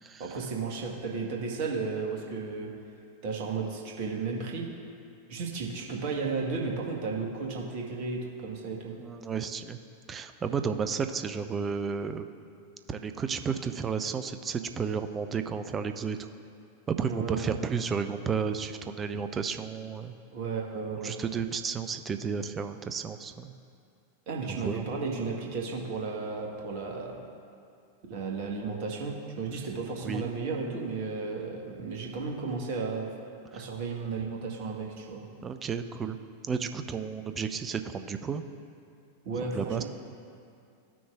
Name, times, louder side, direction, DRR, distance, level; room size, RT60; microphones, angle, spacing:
voice 1, 0.2-2.7 3.2-4.7 5.3-9.0 10.6-10.8 17.0-17.4 20.3-21.2 24.3-27.2 28.1-33.1 33.5-35.3 39.2-39.8, right 4 dB, 45° right, -1 dB, 1.2 m, -34 dB
voice 2, 9.0-9.8 10.1-12.3 12.9-16.3 16.9-20.1 21.0-23.6 24.5-24.8 30.0-30.3 33.5-33.6 35.4-36.2 36.4-38.4 39.5-39.8, right 6 dB, 20° right, 9 dB, 0.4 m, -32 dB
14.0 x 6.1 x 2.3 m, 2.5 s
figure-of-eight pair, 90°, 0 cm